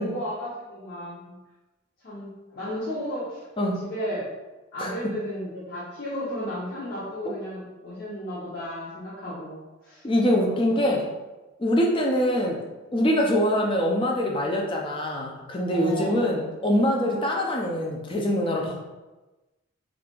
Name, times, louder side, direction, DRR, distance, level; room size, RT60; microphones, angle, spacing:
voice 1, 0.0-1.3 2.0-4.2 4.7-10.1 10.3-10.8 15.7-16.2, equal, 50° left, -10 dB, 0.7 m, -34 dB
voice 2, 10.0-11.0 11.6-12.6 12.9-18.8, equal, 25° left, -1 dB, 0.4 m, -24 dB
2.7 x 2.4 x 3.6 m, 1.1 s
head